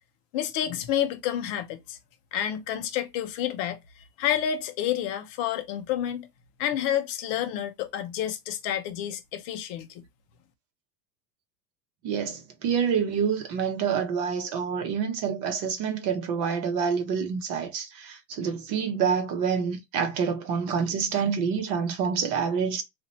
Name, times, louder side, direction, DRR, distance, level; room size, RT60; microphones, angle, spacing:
voice 1, 0.3-2.0 2.3-3.8 4.2-6.3 6.6-10.0, left 10 dB, 35° left, 0.7 m, -29 dB
voice 2, 12.0-22.8, right 6 dB, 40° right, 1.0 m, -27 dB
2.8 x 2.6 x 4.1 m
supercardioid pair, 150°, 48 cm